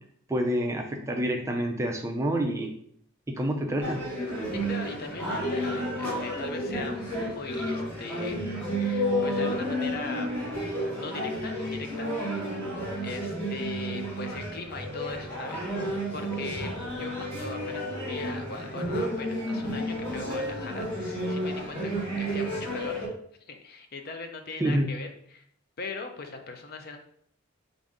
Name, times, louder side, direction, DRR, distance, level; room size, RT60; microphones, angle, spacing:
voice 1, 0.3-2.7 3.3-4.0 24.6-24.9, right 1 dB, 15° right, 2 dB, 0.4 m, -27 dB
sound 1, 3.8-23.1, equal, 10° left, 1.5 m, -31 dB
voice 2, 4.5-8.4 8.8-10.3 11.0-12.1 13.0-16.7 17.0-23.0 23.5-25.4 25.8-27.0, left 4 dB, 45° left, 5 dB, 0.5 m, -39 dB
5.1 x 2.6 x 3.6 m, 0.66 s
head